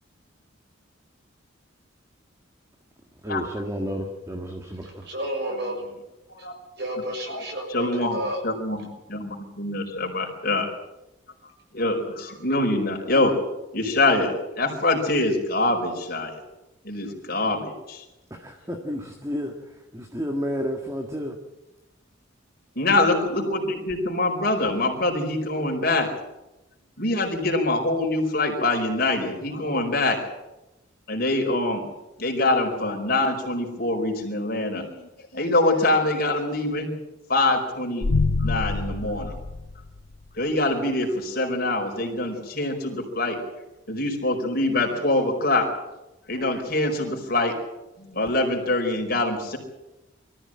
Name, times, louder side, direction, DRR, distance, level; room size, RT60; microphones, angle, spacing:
voice 1, 3.2-5.1 18.3-21.3, equal, 15° right, 3 dB, 1.7 m, -31 dB
voice 2, 4.8-5.7 6.4-6.5 6.8-8.4, right 1 dB, 55° right, 3 dB, 6.5 m, -31 dB
voice 3, 7.7-10.7 11.7-13.3 13.7-16.4 16.8-18.0 22.7-26.1 27.0-30.2 31.1-31.8 32.2-36.9 37.3-38.1 38.4-39.3 40.3-43.4 43.9-45.7 46.3-47.5 48.0-49.6, left 2 dB, 45° left, 2 dB, 4.8 m, -24 dB
sound 1, 38.0-40.3, left 3 dB, 80° left, 0.9 m, -26 dB
23.5 x 14.5 x 8.9 m, 0.99 s
head